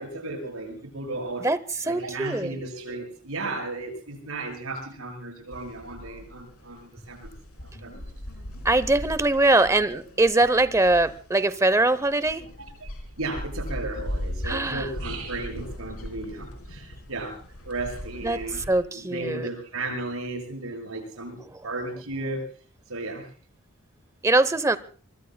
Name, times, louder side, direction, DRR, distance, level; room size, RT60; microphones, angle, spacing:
voice 1, 0.0-1.5 1.8-7.3 7.6-8.0 12.8-12.9 13.2-18.6 18.9-22.5 22.9-23.3, right 2 dB, 75° right, 7.5 m, -34 dB
voice 2, 1.9-2.5 8.6-12.4 14.4-14.9 18.2-18.4 18.7-19.5 24.2-24.8, right 2 dB, 15° right, 0.7 m, -22 dB
sound 1, 5.5-18.7, equal, 80° left, 4.9 m, -38 dB
25.0 x 24.5 x 2.3 m
head